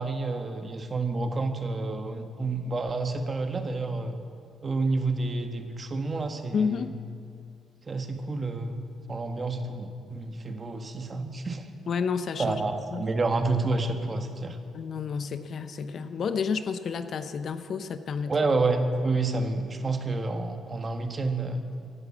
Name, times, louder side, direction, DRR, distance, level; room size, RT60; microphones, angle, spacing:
voice 1, 0.0-4.2 4.6-6.9 7.9-8.8 9.1-11.7 12.4-14.6 18.3-21.6, right 3 dB, 35° right, 6 dB, 1.4 m, -29 dB
voice 2, 6.5-6.9 11.9-12.6 12.9-13.0 14.7-18.3, left 6 dB, 55° left, 10 dB, 0.8 m, -30 dB
16.0 x 11.0 x 7.2 m, 2.3 s
cardioid pair, 90°, 0 cm